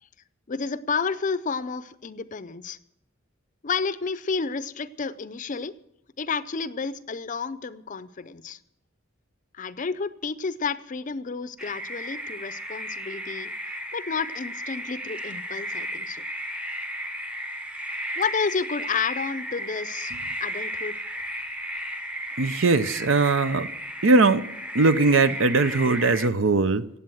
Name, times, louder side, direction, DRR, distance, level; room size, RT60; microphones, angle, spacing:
voice 1, 0.5-2.8 3.6-5.7 6.2-8.6 9.6-13.5 13.9-16.2 18.2-21.0, left 5 dB, 40° left, 0.5 m, -30 dB
sound 1, 11.6-26.3, equal, 5° right, 0.8 m, -34 dB
voice 2, 22.4-23.7 24.0-24.5 24.7-26.9, right 3 dB, 70° right, 0.6 m, -20 dB
16.5 x 8.4 x 7.7 m
head